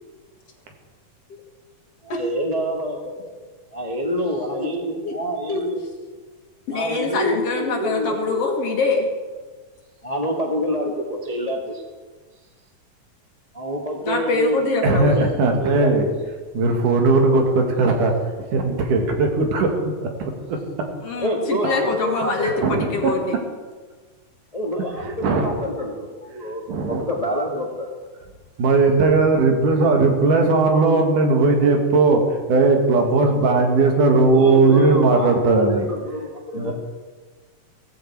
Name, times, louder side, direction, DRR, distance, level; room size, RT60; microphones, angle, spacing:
voice 1, 2.0-3.3 3.7-5.8 6.7-8.4 10.0-11.8 13.5-15.9 21.2-22.5 24.5-27.9 34.3-36.7, equal, 25° left, 0 dB, 0.8 m, -27 dB
voice 2, 6.7-9.1 14.0-15.3 21.0-23.3 36.6-36.7, left 4 dB, 55° left, 2 dB, 2.7 m, -24 dB
voice 3, 14.8-16.1 16.5-18.1 18.5-19.7 20.2-20.3 22.4-23.1 25.0-25.7 26.7-27.0 28.6-32.2 32.5-35.9 36.6-36.7, right 3 dB, 80° right, 3 dB, 3.4 m, -18 dB
16.5 x 14.5 x 4.7 m, 1.4 s
omnidirectional pair, 3.6 m